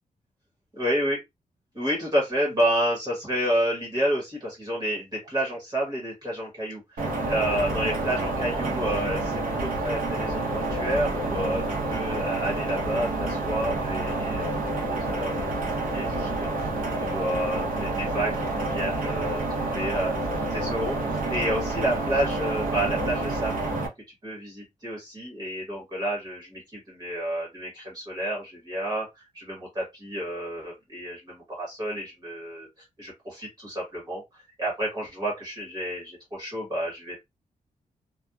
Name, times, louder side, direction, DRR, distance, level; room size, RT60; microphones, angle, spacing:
voice 1, 0.8-1.2 1.7-15.5 15.9-19.4 19.7-23.6 24.2-32.7 33.0-37.2, right 1 dB, 25° right, 1.1 m, -30 dB
sound 1, 7.0-23.9, right 2 dB, 85° right, 0.9 m, -28 dB
2.8 x 2.2 x 2.3 m
wide cardioid pair, 175°, 14 cm